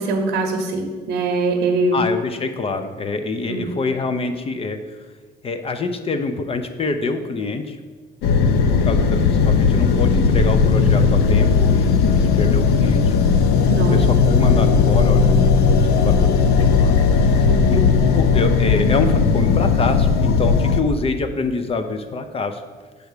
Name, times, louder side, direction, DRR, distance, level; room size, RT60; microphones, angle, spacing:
voice 1, 0.0-2.0 3.5-3.7 13.7-14.3 17.4-17.9, right 3 dB, 80° right, 2 dB, 0.7 m, -23 dB
voice 2, 1.9-5.0 5.4-7.8 8.7-12.1 12.4-13.1 13.9-17.8 18.1-22.6, left 3 dB, 35° left, 8 dB, 0.5 m, -26 dB
sound 1, 8.2-20.8, left 5 dB, 85° left, 0.6 m, -16 dB
7.6 x 3.5 x 6.5 m, 1.4 s
cardioid pair, 110°, 17 cm